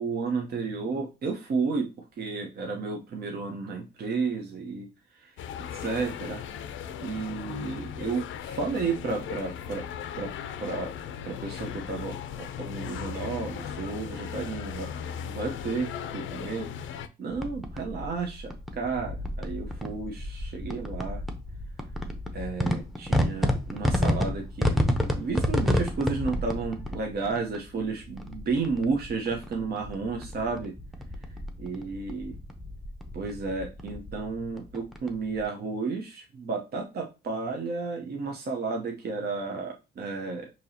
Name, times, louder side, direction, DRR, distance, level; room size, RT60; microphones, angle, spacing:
voice 1, 0.0-4.9 5.1-5.3 5.7-6.4 7.0-9.9 10.2-10.3 10.6-10.9 11.2-14.9 15.2-16.7 17.2-21.2 22.3-24.8 25.2-30.7 31.6-32.4 33.1-40.5, right 4 dB, 50° right, 1 dB, 0.8 m, -32 dB
sound 1, 5.4-17.1, left 8 dB, 75° left, 0.5 m, -37 dB
sound 2, 17.3-35.5, left 1 dB, ahead, 0.7 m, -31 dB
4.6 x 2.8 x 2.7 m, 0.29 s
cardioid pair, 90°, 20 cm